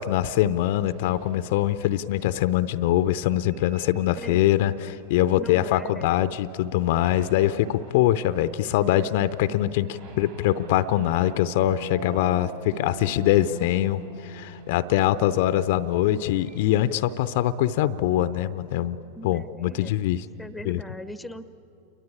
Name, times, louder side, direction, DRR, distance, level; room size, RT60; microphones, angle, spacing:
voice 1, 0.0-19.0 19.2-20.2 20.7-20.8, left 13 dB, 50° left, 14 dB, 0.7 m, -23 dB
sound 1, 0.9-2.2 3.4-5.9 6.2-6.6 7.0-17.3, right 5 dB, 60° right, 3.9 m, -44 dB
voice 2, 4.2-4.5 5.4-6.3 19.1-20.0 20.4-21.5, equal, ahead, 14 dB, 1.0 m, -40 dB
29.0 x 23.0 x 8.7 m, 2.7 s
figure-of-eight pair, 90°, 0 cm